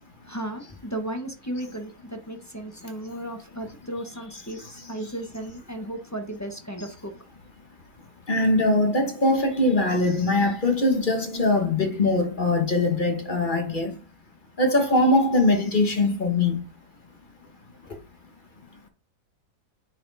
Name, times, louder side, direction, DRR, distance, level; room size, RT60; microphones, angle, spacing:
voice 1, 0.2-7.1, right 1 dB, 15° left, 0.8 m, -35 dB
voice 2, 8.3-13.9 14.6-16.6, left 2 dB, 35° left, 1.2 m, -22 dB
9.1 x 4.3 x 4.0 m
omnidirectional pair, 1.7 m